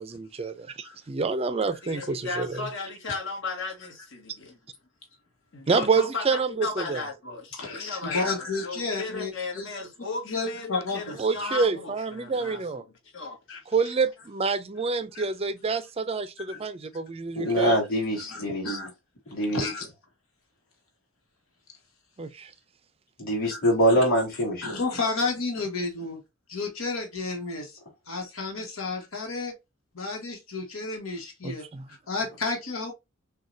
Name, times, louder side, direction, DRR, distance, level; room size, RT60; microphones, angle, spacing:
voice 1, 0.0-2.6 5.7-7.0 11.2-12.8 13.7-17.8 22.2-22.5 31.4-31.9, right 4 dB, 30° right, 0.5 m, -27 dB
voice 2, 1.8-4.5 5.5-12.8 13.1-13.9 28.6-28.7, left 3 dB, 60° left, 1.5 m, -36 dB
voice 3, 7.5-9.7 10.2-11.2 15.1-15.2 16.5-16.6 17.6-17.7 18.3-18.9 19.5-19.9 23.5-24.0 24.6-26.2 26.5-27.7 28.1-29.5 29.9-32.9, left 3 dB, 80° left, 1.4 m, -32 dB
voice 4, 17.3-18.8 19.3-19.7 23.2-24.8, equal, 45° left, 2.7 m, -24 dB
6.3 x 2.4 x 2.7 m
head